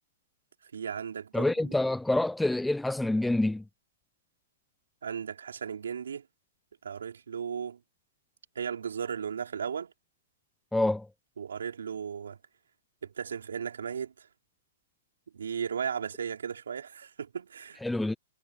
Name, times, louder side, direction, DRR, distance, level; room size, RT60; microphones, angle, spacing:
voice 1, 0.6-1.8 5.0-6.3 6.8-7.8 8.5-9.9 11.4-12.4 13.0-14.3 15.3-17.8, right 7 dB, 75° right, 4.3 m, -36 dB
voice 2, 1.3-3.6 10.7-11.1 17.8-18.2, left 2 dB, 5° left, 0.4 m, -27 dB
hypercardioid pair, 130°, 0 cm